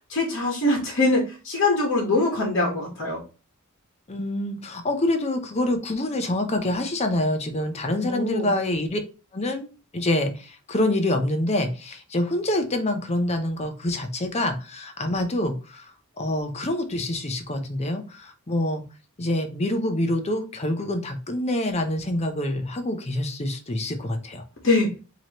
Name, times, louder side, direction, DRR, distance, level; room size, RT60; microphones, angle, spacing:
voice 1, 0.1-3.2 8.0-8.5 24.6-24.9, left 2 dB, 55° left, -2 dB, 1.3 m, -23 dB
voice 2, 4.1-9.0 9.3-9.7 9.9-15.9 16.2-18.8 19.2-24.4, left 1 dB, 30° left, 7 dB, 0.6 m, -26 dB
4.7 x 2.9 x 2.9 m, 0.34 s
head